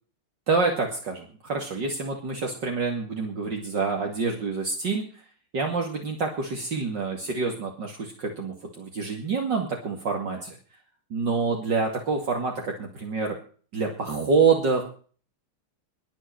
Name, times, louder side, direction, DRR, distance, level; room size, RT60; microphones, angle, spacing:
voice 1, 0.5-5.1 5.5-10.6 11.1-13.4 13.7-14.8, right 4 dB, 55° right, 1 dB, 3.1 m, -27 dB
21.5 x 8.2 x 5.9 m, 0.42 s
omnidirectional pair, 2.4 m